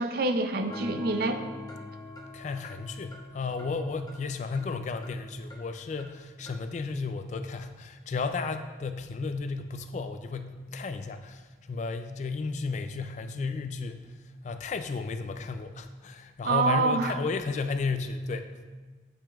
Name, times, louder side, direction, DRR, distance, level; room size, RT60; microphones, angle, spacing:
voice 1, 0.0-1.4 16.4-17.2, right 3 dB, 55° right, 7 dB, 0.4 m, -26 dB
sound 1, 0.7-6.7, left 2 dB, 20° left, 0.7 m, -45 dB
voice 2, 2.3-11.4 11.7-14.0 14.4-18.5, left 4 dB, 40° left, 9 dB, 0.3 m, -33 dB
8.8 x 5.0 x 2.4 m, 1.3 s
head